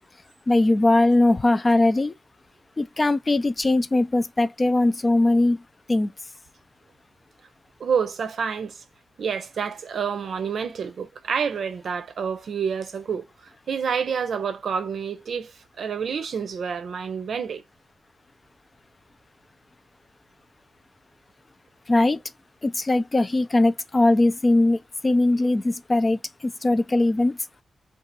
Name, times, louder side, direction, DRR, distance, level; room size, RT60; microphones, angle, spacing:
voice 1, 0.5-2.1 2.8-5.6 5.9-6.1 21.9-22.2 22.6-27.4, left 2 dB, 35° left, 0.4 m, -20 dB
voice 2, 7.8-8.8 9.2-17.6, right 6 dB, 75° right, 0.6 m, -28 dB
2.7 x 2.4 x 4.0 m
cardioid pair, 65°, 0 cm